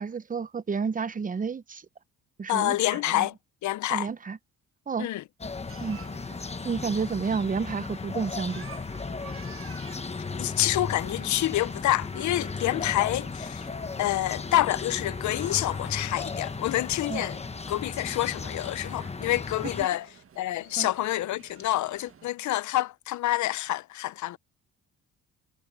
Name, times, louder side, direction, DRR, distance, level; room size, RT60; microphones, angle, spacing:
voice 1, 0.0-1.9 2.4-3.3 3.9-4.4 4.9-5.1 5.8-6.0 6.6-8.7 17.1-17.2 19.8-19.9 20.8-20.9, right 5 dB, 25° right, 0.8 m, -30 dB
voice 2, 2.5-3.3 3.6-4.1 5.0-5.2 10.4-13.7 14.0-17.4 17.7-20.1 20.4-24.4, left 15 dB, 70° left, 0.7 m, -27 dB
sound 1, 5.4-19.9, left 4 dB, 20° left, 1.1 m, -36 dB
sound 2, 5.7-22.3, right 7 dB, 45° right, 1.8 m, -52 dB
cardioid pair, 90°, 30 cm